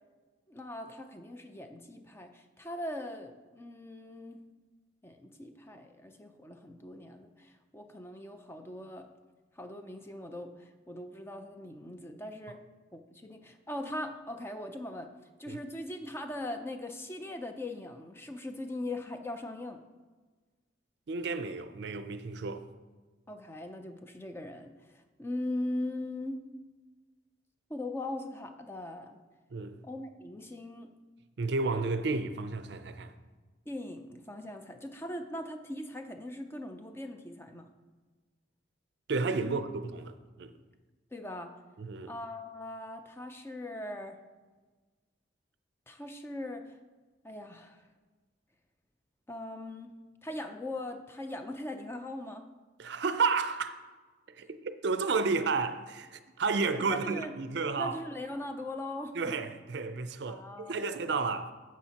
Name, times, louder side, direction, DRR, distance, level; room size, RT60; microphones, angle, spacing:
voice 1, 0.5-4.4 5.0-9.1 9.6-12.6 12.9-15.1 15.4-19.8 23.3-26.4 27.7-29.2 29.8-30.9 33.7-37.7 39.4-39.6 41.1-41.6 42.1-44.2 45.9-46.8 47.2-47.8 49.3-52.5 56.9-57.3 57.8-59.2 60.3-61.0, left 1 dB, 10° left, 0.4 m, -40 dB
voice 2, 21.1-22.7 29.5-29.8 31.4-33.1 39.1-40.5 41.8-42.1 52.8-53.8 54.3-58.0 59.1-61.5, right 4 dB, 55° right, 0.4 m, -32 dB
10.0 x 7.2 x 2.9 m
head